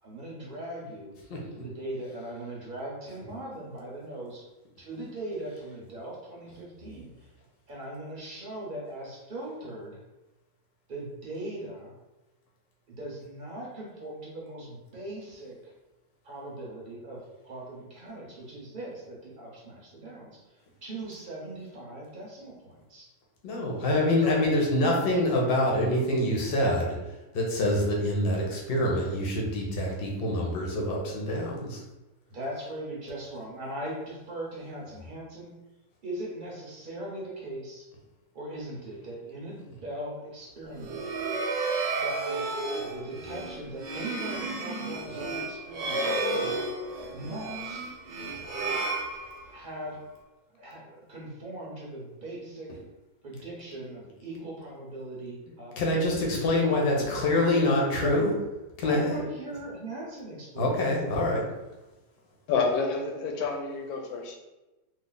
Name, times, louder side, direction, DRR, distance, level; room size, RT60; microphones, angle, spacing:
voice 1, 0.0-1.1 1.5-4.4 4.8-7.3 7.7-10.0 10.9-11.9 12.9-15.7 16.2-23.1 24.2-24.4 32.3-35.5 36.0-37.9 38.3-41.2 42.0-42.5 42.8-46.1 47.1-47.9 49.5-50.0 50.5-52.7 53.2-55.8 56.2-57.1 58.0-58.3 58.8-60.9, right 1 dB, 40° right, -4 dB, 0.8 m, -40 dB
voice 2, 23.4-27.0 27.3-31.8 55.8-58.3 58.8-59.2 60.6-61.5, left 1 dB, 50° left, -1 dB, 0.7 m, -25 dB
sound 1, 40.7-49.7, right 3 dB, 85° right, 0.5 m, -32 dB
voice 3, 62.5-64.3, left 4 dB, 75° left, 2 dB, 1.1 m, -28 dB
3.2 x 2.1 x 3.9 m, 1.1 s
omnidirectional pair, 1.8 m